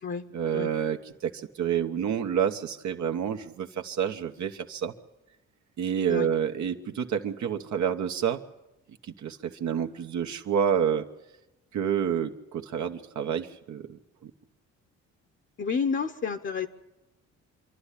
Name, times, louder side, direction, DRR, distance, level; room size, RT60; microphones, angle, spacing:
voice 1, 0.3-4.9 5.8-8.4 9.0-11.1 11.7-14.3, right 8 dB, 70° right, 5 dB, 1.2 m, -29 dB
voice 2, 15.6-16.7, left 5 dB, 40° left, 6 dB, 1.0 m, -29 dB
26.5 x 11.5 x 10.0 m, 0.96 s
cardioid pair, 90°, 30 cm